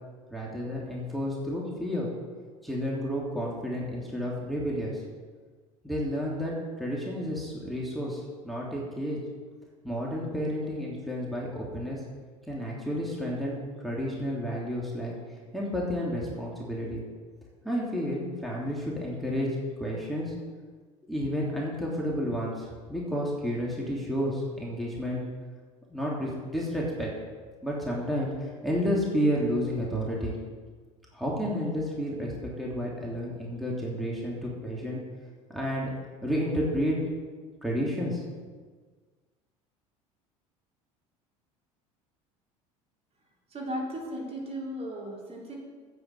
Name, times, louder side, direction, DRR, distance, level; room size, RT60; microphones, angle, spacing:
voice 1, 0.3-2.1 2.6-5.0 5.8-9.2 9.8-12.0 12.5-15.1 15.5-17.0 17.6-19.5 19.8-20.3 21.1-25.2 25.9-27.1 27.6-30.3 31.1-32.3 32.6-35.0 35.5-35.9 36.2-37.0 37.6-38.2, equal, ahead, -5 dB, 3.1 m, -31 dB
voice 2, 43.5-45.6, equal, 35° right, -3 dB, 4.0 m, -36 dB
8.7 x 8.2 x 8.1 m, 1.5 s
hypercardioid pair, 75°, 18 cm